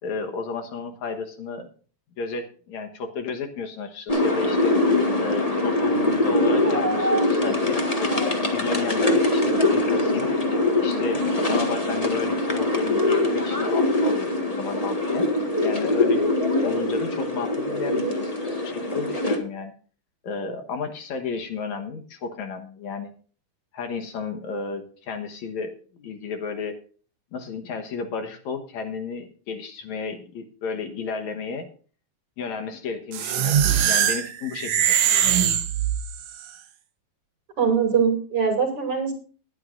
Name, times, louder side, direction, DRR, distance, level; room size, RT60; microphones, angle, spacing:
voice 1, 0.0-1.7 2.2-4.8 5.2-8.1 8.5-10.3 10.8-15.3 15.6-16.3 16.6-18.3 18.6-19.7 20.2-23.1 23.7-26.8 27.3-31.7 32.4-35.0, left 4 dB, 70° left, 5 dB, 2.5 m, -32 dB
sound 1, 4.1-19.4, left 2 dB, 35° left, 0.6 m, -23 dB
sound 2, 33.1-36.4, right 9 dB, 65° right, 1.7 m, -22 dB
voice 2, 37.6-39.1, right 6 dB, 45° right, 3 dB, 3.5 m, -22 dB
20.0 x 9.5 x 2.6 m, 0.40 s
omnidirectional pair, 3.6 m